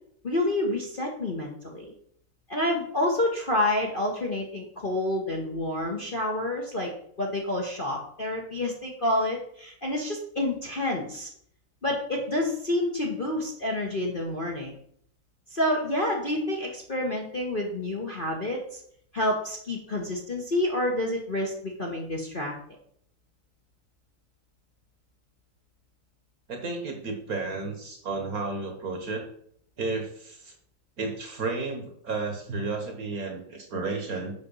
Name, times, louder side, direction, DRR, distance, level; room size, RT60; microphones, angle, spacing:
voice 1, 0.2-1.9 2.5-6.9 7.2-11.3 11.8-14.7 15.5-18.8 19.1-22.5, left 1 dB, 30° left, -1 dB, 1.2 m, -28 dB
voice 2, 26.5-29.3 29.8-30.5 31.0-34.3, right 3 dB, 50° right, 3 dB, 1.7 m, -32 dB
7.1 x 6.2 x 5.4 m, 0.65 s
omnidirectional pair, 2.2 m